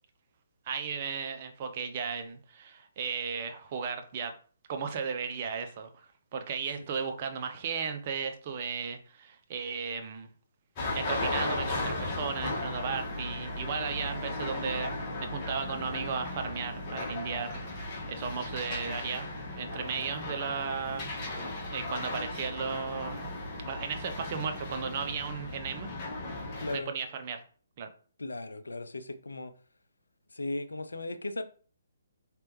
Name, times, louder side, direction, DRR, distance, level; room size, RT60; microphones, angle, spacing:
voice 1, 0.7-4.3 4.7-10.3 10.9-21.1 21.7-23.3 23.7-25.9 26.7-27.4 27.8-27.9, right 6 dB, 40° right, 0.7 m, -35 dB
sound 1, 10.8-26.8, left 2 dB, 25° left, 1.7 m, -36 dB
voice 2, 26.6-26.9 28.2-29.5 30.3-31.4, left 2 dB, 75° left, 0.5 m, -36 dB
4.4 x 3.3 x 3.0 m
figure-of-eight pair, 135°, 0 cm